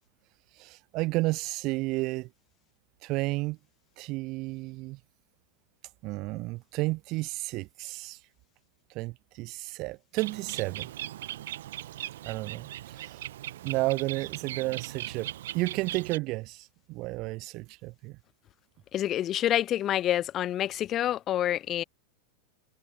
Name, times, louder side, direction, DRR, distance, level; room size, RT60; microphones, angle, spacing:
voice 1, 0.5-2.3 3.0-3.6 4.0-5.0 6.0-8.2 8.9-10.9 12.2-13.2 13.6-18.2, right 22 dB, 40° right, 0.3 m, -32 dB
Bird, 10.2-16.2, right 13 dB, 55° right, 1.3 m, -39 dB
voice 2, 18.9-21.8, left 12 dB, 30° left, 0.7 m, -27 dB
figure-of-eight pair, 90°, 0 cm